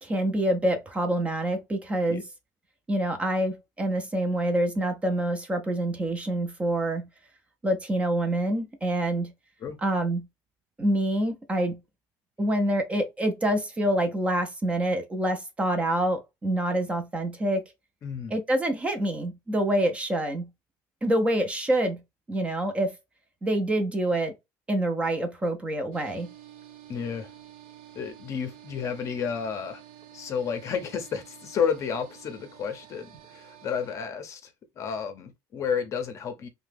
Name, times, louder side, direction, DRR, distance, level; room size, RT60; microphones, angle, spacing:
voice 1, 0.0-2.2 2.9-7.1 7.6-9.3 9.8-10.3 10.8-11.8 12.4-17.6 18.3-20.5 21.0-22.0 22.3-22.9 23.4-24.4 24.7-26.3, right 1 dB, 15° right, 0.5 m, -26 dB
voice 2, 18.0-18.3 26.9-27.3 27.9-29.8 30.1-36.5, left 6 dB, 40° left, 0.6 m, -31 dB
sound 1, 25.9-34.0, right 11 dB, 80° right, 0.6 m, -50 dB
2.8 x 2.1 x 3.3 m
cardioid pair, 140°, 8 cm